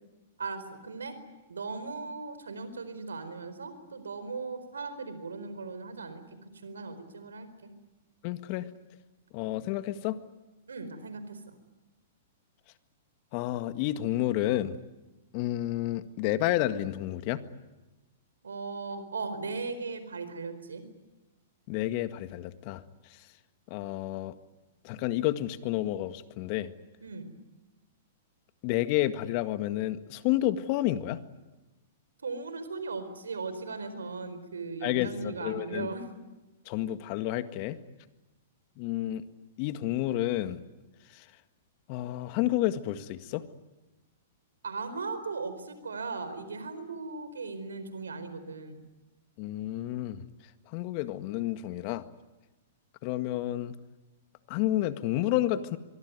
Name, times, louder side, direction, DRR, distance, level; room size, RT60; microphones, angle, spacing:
voice 1, 0.4-1.2 1.5-7.7 10.7-11.5 18.4-20.9 27.0-27.3 32.2-36.1 44.6-48.8, right 4 dB, 85° right, 11 dB, 4.4 m, -38 dB
voice 2, 8.2-8.7 9.3-10.2 13.3-14.8 15.3-17.4 21.7-22.8 23.7-24.4 24.8-26.7 28.6-31.2 34.8-35.9 36.7-37.8 38.8-39.3 39.6-40.6 41.1-41.2 41.9-43.4 49.4-50.2 50.7-52.0 53.0-53.7 54.5-55.8, left 14 dB, 45° left, 11 dB, 1.7 m, -30 dB
25.0 x 23.0 x 9.6 m, 1.1 s
hypercardioid pair, 115°, 0 cm